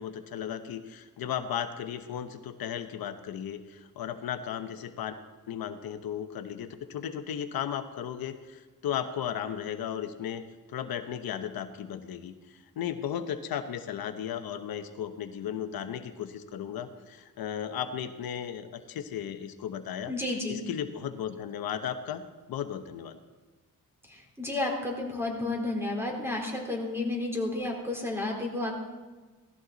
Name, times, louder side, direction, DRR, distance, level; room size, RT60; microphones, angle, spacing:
voice 1, 0.0-5.2 5.5-10.4 10.7-20.1 20.5-22.2 22.5-23.2, left 9 dB, 90° left, 8 dB, 1.0 m, -35 dB
voice 2, 20.1-20.6 24.1-28.7, left 2 dB, 5° right, 0 dB, 4.0 m, -31 dB
18.0 x 14.0 x 4.1 m, 1.3 s
cardioid pair, 100°, 35 cm